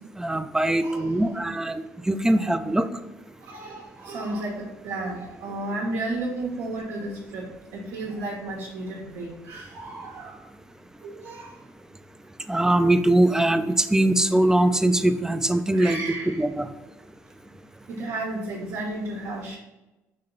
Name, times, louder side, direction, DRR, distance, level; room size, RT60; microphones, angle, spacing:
voice 1, 0.2-2.9 12.5-16.0 16.4-16.7, right 1 dB, 5° right, 10 dB, 0.4 m, -22 dB
voice 2, 0.8-1.4 2.3-2.4 3.5-7.4 7.7-10.4 11.0-11.5 15.7-16.4 17.9-19.6, right 2 dB, 75° right, -3 dB, 0.9 m, -33 dB
4.2 x 2.8 x 3.9 m, 1.0 s
hypercardioid pair, 60°, 8 cm